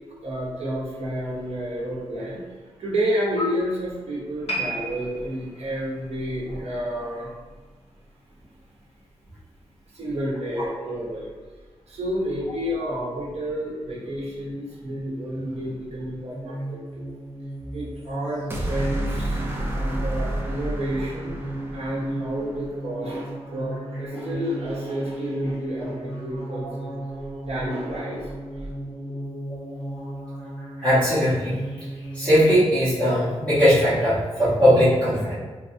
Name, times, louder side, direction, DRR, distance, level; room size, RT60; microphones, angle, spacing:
voice 1, 0.2-2.4 2.8-7.3 9.9-11.3 11.9-17.1 17.7-19.4 19.7-21.3 21.7-27.0 27.4-28.3, equal, 70° right, -5 dB, 0.9 m, -30 dB
sound 1, 4.5-7.8 8.1-8.3 9.0-9.1, right 1 dB, 65° left, 0.6 m, -35 dB
sound 2, 16.3-32.6, right 1 dB, 35° left, 1.2 m, -35 dB
sound 3, 18.5-22.8, right 1 dB, 20° right, 0.3 m, -30 dB
voice 2, 30.8-31.6 32.1-35.3, equal, 10° left, -15 dB, 1.1 m, -19 dB
4.1 x 2.0 x 2.6 m, 1.4 s
wide cardioid pair, 180°, 11 cm